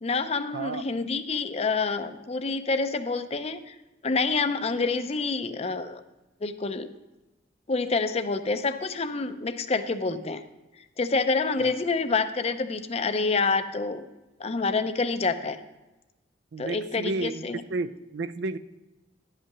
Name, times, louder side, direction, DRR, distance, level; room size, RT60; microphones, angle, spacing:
voice 1, 0.0-3.7 4.0-6.0 6.4-6.9 7.7-10.4 11.0-14.1 14.4-15.6 16.6-17.6, left 4 dB, 35° left, 10 dB, 0.5 m, -27 dB
voice 2, 16.5-18.6, right 3 dB, 65° right, 14 dB, 0.4 m, -32 dB
11.0 x 5.7 x 5.9 m, 1.1 s
head